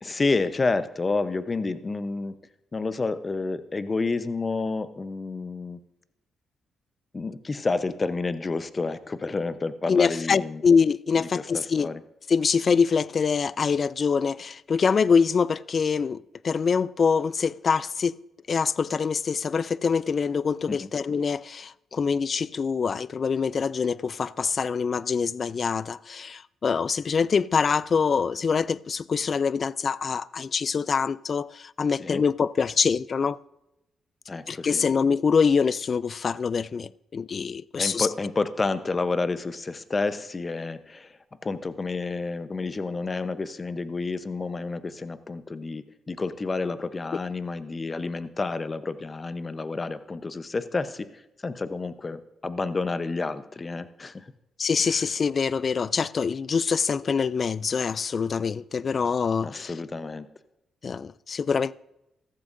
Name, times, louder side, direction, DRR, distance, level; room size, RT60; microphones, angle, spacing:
voice 1, 0.0-2.3 2.7-5.8 7.1-10.6 11.3-12.0 20.7-20.9 31.9-32.2 34.3-34.9 37.8-41.1 41.4-51.1 51.4-54.2 59.4-60.3, left 3 dB, 35° left, 0.8 m, -29 dB
voice 2, 9.9-11.9 12.3-18.1 18.5-33.4 34.5-38.1 54.6-59.7 60.8-61.7, left 5 dB, 50° left, 0.3 m, -24 dB
15.0 x 13.5 x 2.6 m
supercardioid pair, 60°, 0 cm